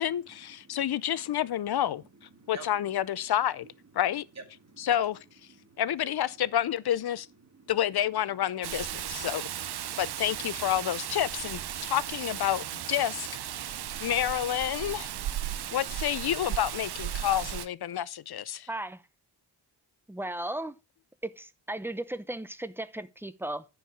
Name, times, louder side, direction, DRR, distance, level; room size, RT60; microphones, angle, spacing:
voice 1, 0.0-2.0 2.5-3.7 3.9-4.2 4.8-5.2 5.8-7.3 7.7-9.5 10.0-13.3 14.0-15.1 15.7-18.7, left 11 dB, 65° left, 0.6 m, -29 dB
voice 2, 2.4-2.7 4.7-5.0 5.6-5.8 7.5-7.7 9.1-9.2 9.8-10.0 11.8-11.9 13.6-14.1 14.8-15.8, right 4 dB, 40° right, 2.1 m, -50 dB
Rain, 8.6-17.7, right 11 dB, 65° right, 0.6 m, -36 dB
voice 3, 18.7-19.0 20.1-20.8 21.2-23.7, right 1 dB, 5° right, 0.6 m, -36 dB
10.0 x 4.7 x 4.6 m
wide cardioid pair, 105°, 42 cm